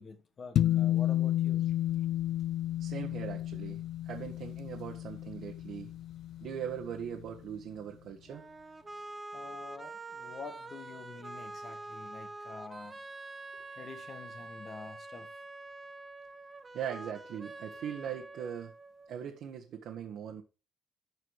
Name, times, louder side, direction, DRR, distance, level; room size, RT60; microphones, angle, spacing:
voice 1, 0.0-1.7 9.3-13.0 13.7-15.3, left 4 dB, 40° left, 1.5 m, -47 dB
sound 1, 0.6-7.1, left 12 dB, 65° left, 0.6 m, -32 dB
voice 2, 2.8-5.9 6.4-8.4 16.7-18.7 19.1-20.4, right 8 dB, 70° right, 1.4 m, -40 dB
sound 2, 8.3-19.3, right 2 dB, 20° right, 0.9 m, -46 dB
13.0 x 4.9 x 4.8 m
cardioid pair, 105°, 0 cm